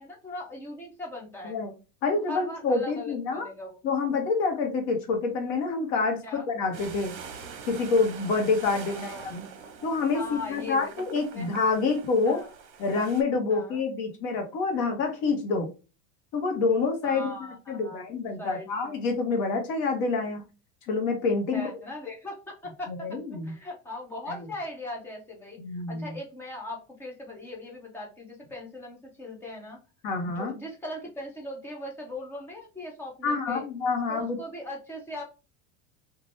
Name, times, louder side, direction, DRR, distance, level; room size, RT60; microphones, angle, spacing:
voice 1, 0.0-1.6 2.1-3.8 6.2-6.5 8.7-11.0 11.3-11.5 12.2-12.5 13.5-13.8 17.0-18.1 18.4-18.9 21.5-29.8 30.2-33.6 34.1-35.2, left 2 dB, 5° left, -1 dB, 0.3 m, -40 dB
voice 2, 2.0-3.5 3.8-7.1 7.7-9.5 9.8-12.4 12.8-15.7 16.3-17.3 17.7-20.4 20.8-21.7 22.9-23.5 25.6-26.2 30.0-30.5 33.2-34.4, left 4 dB, 55° left, 3 dB, 1.1 m, -27 dB
sound 1, 6.7-13.2, right 6 dB, 60° right, 0.9 m, -44 dB
2.8 x 2.5 x 3.1 m, 0.31 s
supercardioid pair, 160°, 41 cm